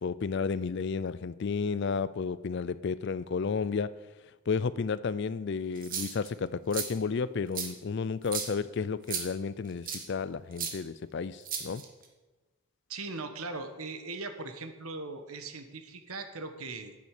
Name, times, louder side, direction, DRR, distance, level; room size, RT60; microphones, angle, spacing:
voice 1, 0.0-3.9 4.5-11.8, left 5 dB, 50° left, 17 dB, 0.4 m, -32 dB
sound 1, 5.8-6.3 6.7-6.9 7.5-7.7 8.2-8.5 9.1-9.2 9.9-10.0 10.6-10.7 11.4-12.0, right 7 dB, 40° right, 1.3 m, -34 dB
voice 2, 12.9-17.0, right 3 dB, 80° right, 8 dB, 1.2 m, -39 dB
9.5 x 8.0 x 6.6 m, 1.2 s
head